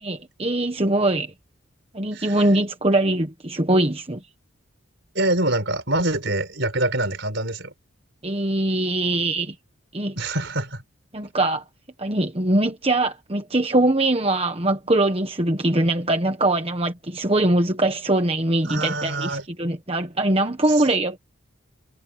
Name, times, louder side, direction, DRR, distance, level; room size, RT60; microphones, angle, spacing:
voice 1, 0.0-1.3 1.9-4.2 8.2-9.5 9.9-10.2 11.1-11.6 12.0-21.2, right 1 dB, 30° right, 1.2 m, -22 dB
voice 2, 5.1-7.7 10.2-10.8 18.7-19.4, right 1 dB, 60° right, 5.0 m, -25 dB
head